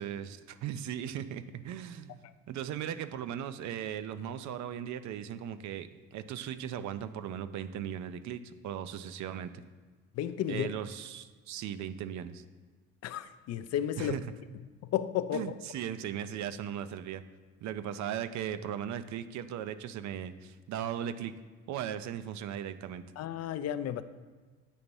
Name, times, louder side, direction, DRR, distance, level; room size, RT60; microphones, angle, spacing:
voice 1, 0.0-9.6 10.5-12.4 14.0-14.2 15.3-17.2 17.6-21.3 21.7-23.0, right 9 dB, 60° right, 12 dB, 0.5 m, -38 dB
voice 2, 10.1-10.7 13.0-14.2 14.8-15.5 23.2-24.0, left 10 dB, 50° left, 12 dB, 0.4 m, -33 dB
8.4 x 2.9 x 5.3 m, 1.4 s
supercardioid pair, 70°, 32 cm